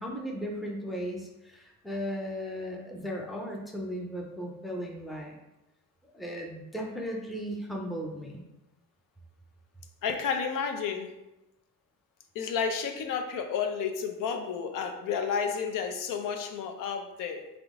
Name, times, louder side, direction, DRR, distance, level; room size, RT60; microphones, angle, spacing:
voice 1, 0.0-5.4 6.1-8.4, equal, ahead, 0 dB, 0.5 m, -36 dB
voice 2, 10.0-11.1 12.3-17.5, left 6 dB, 75° left, 5 dB, 0.6 m, -31 dB
3.6 x 3.5 x 3.6 m, 0.93 s
cardioid pair, 155°, 32 cm